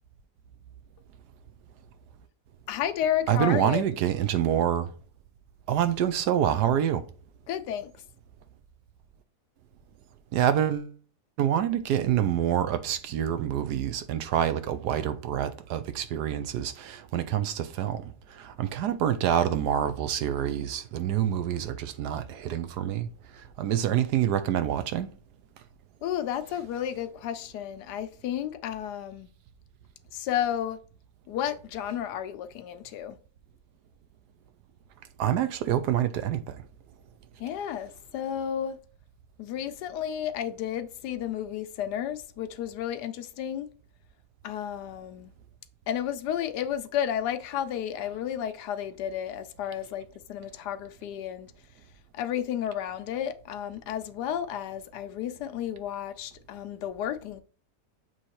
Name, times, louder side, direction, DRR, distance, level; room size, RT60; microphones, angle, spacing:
voice 1, 2.7-3.8 7.5-7.9 26.0-29.3 30.1-30.8 31.3-33.2 37.4-38.8 39.4-43.7 44.4-45.3 45.9-51.5 52.1-57.4, left 10 dB, 90° left, 1.3 m, -32 dB
voice 2, 3.3-4.9 5.7-7.0 10.3-10.9 11.4-23.1 23.3-25.1 35.2-36.6, right 10 dB, 80° right, 1.3 m, -27 dB
7.3 x 3.2 x 4.3 m
omnidirectional pair, 1.7 m